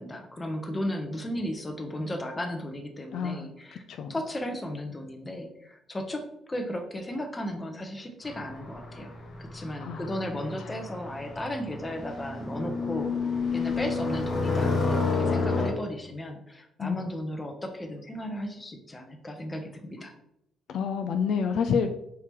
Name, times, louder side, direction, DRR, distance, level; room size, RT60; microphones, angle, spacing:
voice 1, 0.0-3.8 4.1-6.2 6.5-9.1 9.4-20.1, left 1 dB, 20° left, 5 dB, 0.8 m, -35 dB
voice 2, 3.1-3.5 3.9-4.1 9.8-10.1 16.8-17.0 20.7-21.9, left 6 dB, 70° left, 6 dB, 0.3 m, -28 dB
sound 1, 8.2-15.7, left 4 dB, 55° left, 1.2 m, -30 dB
4.6 x 2.9 x 3.5 m, 0.78 s
cardioid pair, 90°, 0 cm